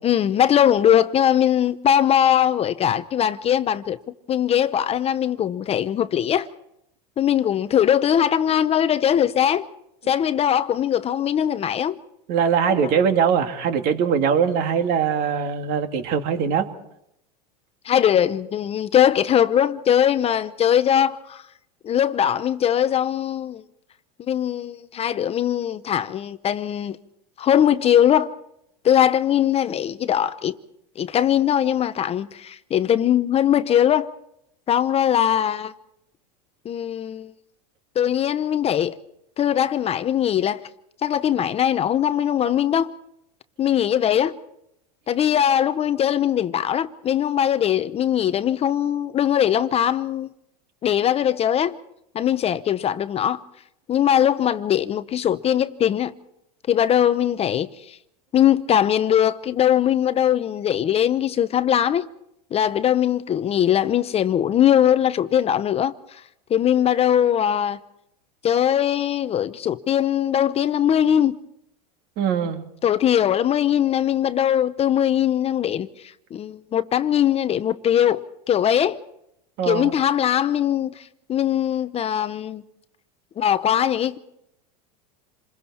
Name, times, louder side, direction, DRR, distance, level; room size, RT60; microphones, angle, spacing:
voice 1, 0.0-4.0 4.3-6.5 7.2-9.7 10.1-12.0 12.6-12.9 17.8-21.4 21.8-23.6 24.3-27.0 27.4-28.3 28.8-30.6 31.0-34.1 34.7-35.7 36.6-37.3 38.0-39.0 39.4-40.6 41.0-42.9 43.6-44.4 45.1-50.3 50.8-51.8 52.1-53.4 53.9-56.1 56.7-58.0 58.3-62.1 62.5-66.2 66.5-67.8 68.4-71.4 72.8-75.9 76.3-79.0 79.6-82.6 83.4-84.2, left 10 dB, 30° left, 0.7 m, -20 dB
voice 2, 12.3-16.7 72.2-72.7 79.6-79.9, right 7 dB, 50° right, 2.3 m, -21 dB
28.0 x 21.5 x 4.3 m
hypercardioid pair, 105°, 21 cm